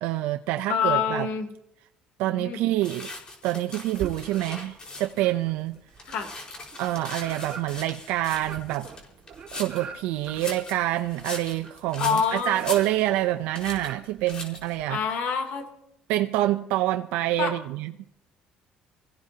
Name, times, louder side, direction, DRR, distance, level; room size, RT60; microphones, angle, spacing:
voice 1, 0.0-1.3 2.2-3.1 3.4-5.8 6.8-8.9 9.5-15.0 16.1-17.9, right 15 dB, 85° right, 0.6 m, -27 dB
voice 2, 0.7-1.5 2.2-2.6 6.1-6.3 12.0-12.7 14.9-15.7 17.4-17.5, left 7 dB, 65° left, 2.9 m, -26 dB
sound 1, 2.8-5.3 5.7-9.9 10.2-13.3 13.5-13.9 14.3-14.8, left 2 dB, 30° left, 4.7 m, -40 dB
sound 2, 3.9-4.8 5.1-15.0, right 6 dB, 40° right, 1.9 m, -43 dB
26.0 x 16.0 x 2.8 m
cardioid pair, 125°, 3 cm